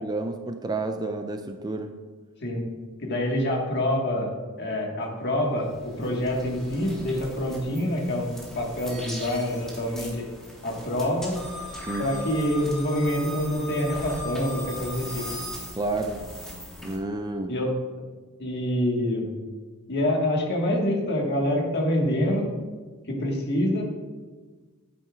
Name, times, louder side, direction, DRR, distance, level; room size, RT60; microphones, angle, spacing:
voice 1, 0.0-1.9 11.9-12.1 15.8-16.2 16.8-17.5, right 2 dB, 20° right, 6 dB, 0.4 m, -30 dB
voice 2, 3.0-4.3 4.6-8.3 8.5-10.2 10.6-11.4 12.0-15.2 17.5-17.7 18.4-19.3 19.9-22.5 23.1-23.9, left 1 dB, 50° left, 0 dB, 1.6 m, -26 dB
sound 1, 5.3-17.0, left 1 dB, ahead, 1.5 m, -39 dB
9.1 x 8.7 x 2.4 m, 1.4 s
head